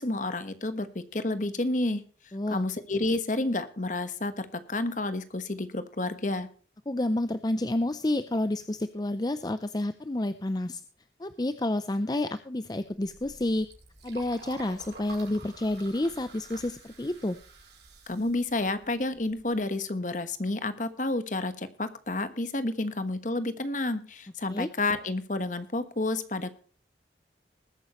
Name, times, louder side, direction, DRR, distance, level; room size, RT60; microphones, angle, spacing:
voice 1, 0.0-2.0 2.5-6.5 18.1-26.5, left 2 dB, 45° left, 11 dB, 1.3 m, -30 dB
voice 2, 2.3-2.7 6.9-10.8 11.2-13.7 14.0-17.4 24.5-24.7, left 1 dB, 20° left, 11 dB, 0.5 m, -29 dB
Liquid, 12.9-19.6, right 3 dB, 70° right, 6.5 m, -49 dB
20.5 x 9.3 x 3.0 m, 0.42 s
head